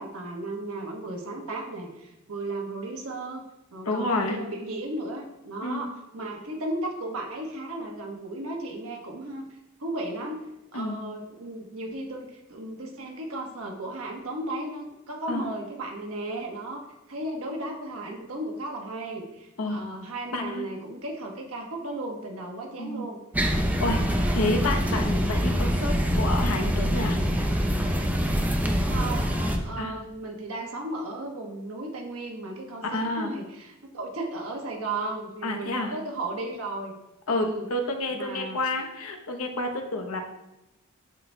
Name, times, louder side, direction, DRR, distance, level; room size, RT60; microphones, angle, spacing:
voice 1, 0.0-3.5 3.7-9.5 9.8-10.4 10.7-23.2 28.9-36.9 37.3-37.6 38.1-38.6, right 2 dB, 80° right, 1 dB, 1.3 m, -35 dB
voice 2, 3.8-4.4 5.6-5.8 10.7-11.0 15.3-15.5 19.6-19.9 20.3-20.7 22.8-23.1 23.8-24.0 24.3-27.2 29.8-29.9 32.8-33.3 35.4-35.9 37.3-40.2, left 2 dB, 80° left, 3 dB, 0.9 m, -29 dB
sound 1, 23.3-29.6, equal, 5° right, 0.5 m, -25 dB
11.5 x 4.1 x 2.2 m, 0.95 s
head